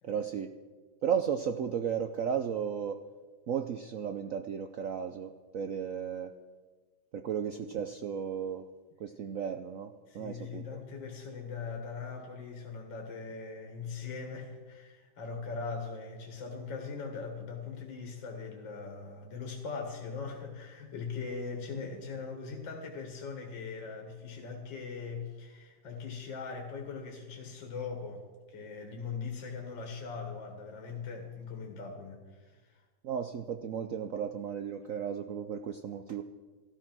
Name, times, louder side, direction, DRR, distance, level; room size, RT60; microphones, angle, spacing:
voice 1, 0.0-0.5 1.0-3.0 3.5-6.3 7.1-8.7 9.0-10.8 33.0-36.2, right 8 dB, 65° right, 7 dB, 0.8 m, -34 dB
voice 2, 10.1-32.8, left 5 dB, 70° left, 2 dB, 2.4 m, -40 dB
14.0 x 13.5 x 6.1 m, 1.3 s
omnidirectional pair, 2.1 m